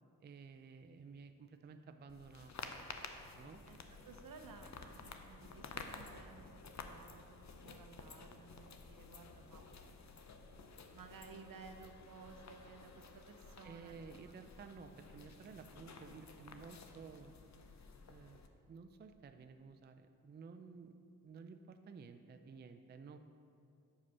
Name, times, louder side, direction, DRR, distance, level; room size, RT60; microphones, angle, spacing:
voice 1, 0.2-2.7 3.3-3.6 13.6-17.3 18.1-18.4 18.7-20.9 21.2-23.2, right 5 dB, 30° right, 8 dB, 0.4 m, -54 dB
sound 1, 2.1-18.5, left 4 dB, 50° left, 0.7 m, -53 dB
voice 2, 3.7-6.5 6.8-9.9 10.9-14.5 15.6-15.7, right 5 dB, 65° right, 6 dB, 0.7 m, -57 dB
6.1 x 4.9 x 5.5 m, 2.5 s
cardioid pair, 40°, 37 cm